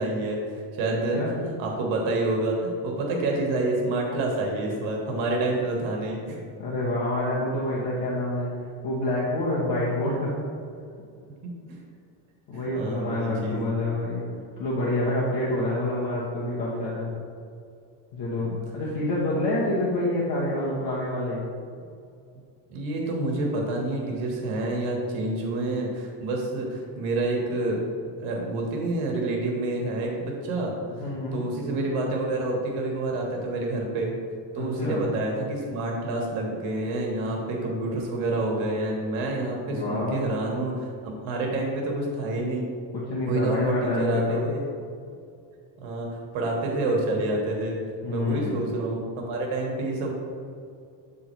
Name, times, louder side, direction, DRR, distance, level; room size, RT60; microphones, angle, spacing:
voice 1, 0.0-1.2 1.4-6.4 12.5-13.6 18.3-18.6 22.7-27.8 28.2-30.7 31.3-34.1 34.5-40.8 41.0-42.7 43.2-44.6 45.8-47.8 48.1-50.1, right 2 dB, 70° right, 0 dB, 1.4 m, -28 dB
voice 2, 6.6-8.5 8.8-10.3 12.5-14.2 14.6-17.1 18.1-21.5 31.0-31.4 34.6-35.0 39.6-40.2 42.9-44.5 48.0-48.6, left 1 dB, 55° left, -6 dB, 1.3 m, -27 dB
8.0 x 3.6 x 4.5 m, 2.4 s
cardioid pair, 165°, 48 cm